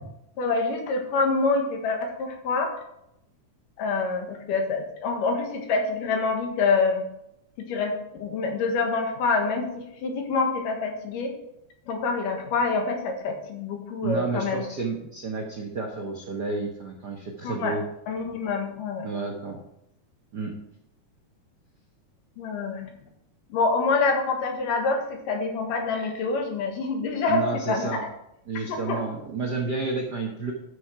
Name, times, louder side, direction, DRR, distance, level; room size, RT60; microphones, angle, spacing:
voice 1, 0.4-2.7 3.8-7.0 7.6-7.9 8.2-9.7 10.0-11.3 11.9-14.6 17.4-17.8 18.1-19.1 22.4-22.9 23.5-27.4 27.7-28.1 28.7-29.0, left 4 dB, 90° left, 3 dB, 3.1 m, -26 dB
voice 2, 14.0-17.8 19.0-19.6 20.3-20.5 27.3-28.0 28.5-30.5, right 4 dB, 70° right, 0 dB, 1.0 m, -30 dB
12.0 x 6.6 x 4.6 m, 0.81 s
omnidirectional pair, 3.7 m